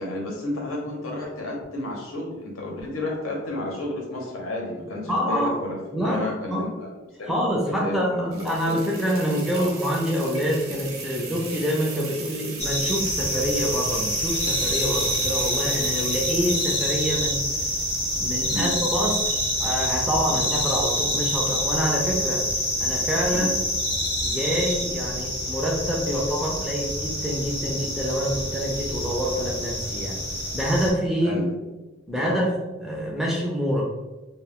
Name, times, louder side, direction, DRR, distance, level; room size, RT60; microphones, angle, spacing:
voice 1, 0.0-6.9 7.2-7.3 7.7-8.8 9.5-9.7 18.5-18.8 20.3-20.4 23.3-23.5 31.2-31.6 32.2-32.4, left 1 dB, 85° left, -1 dB, 0.8 m, -32 dB
voice 2, 5.0-5.6 5.9-6.7 7.3-17.5 18.2-22.5 22.8-23.5 24.2-30.2 30.5-31.4 32.1-33.8, equal, ahead, -2 dB, 0.3 m, -26 dB
sound 1, 8.3-17.0, right 4 dB, 90° right, 0.7 m, -37 dB
sound 2, 12.6-30.9, equal, 30° left, 0.7 m, -27 dB
2.3 x 2.2 x 3.4 m, 1.1 s
head